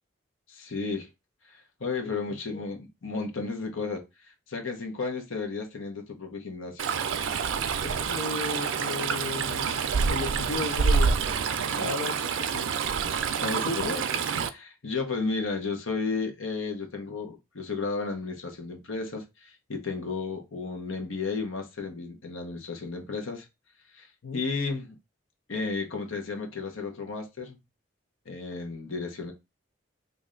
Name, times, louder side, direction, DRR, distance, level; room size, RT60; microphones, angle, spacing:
voice 1, 0.5-1.1 1.5-4.0 4.5-6.8 11.8-11.9 12.4-12.5 13.3-14.0 14.4-23.5 23.9-25.0 25.5-27.6 28.3-29.3, left 4 dB, 90° left, 0.9 m, -33 dB
Stream, 6.8-14.5, right 6 dB, 75° right, 0.4 m, -27 dB
voice 2, 7.8-11.2 11.7-12.8 13.6-14.0 24.2-24.4, left 4 dB, 75° left, 0.4 m, -35 dB
3.2 x 2.5 x 3.7 m
head